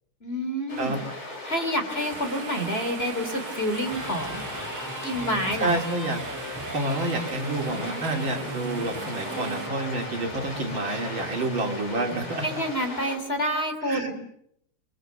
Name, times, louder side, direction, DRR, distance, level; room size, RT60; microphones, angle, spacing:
voice 1, 0.2-1.0 1.4-4.4 5.0-5.8 12.4-14.1, equal, 25° left, 6 dB, 3.4 m, -28 dB
sound 1, 0.7-13.2, left 2 dB, 70° left, 8.7 m, -38 dB
sound 2, 2.0-9.7, right 6 dB, 85° right, 2.6 m, -41 dB
Electric guitar, 3.7-11.8, equal, 10° right, 6.9 m, -39 dB
voice 2, 5.6-6.2 6.7-12.6 13.9-14.1, right 2 dB, 65° right, 2 dB, 3.8 m, -29 dB
29.0 x 23.5 x 6.7 m, 0.72 s
omnidirectional pair, 2.3 m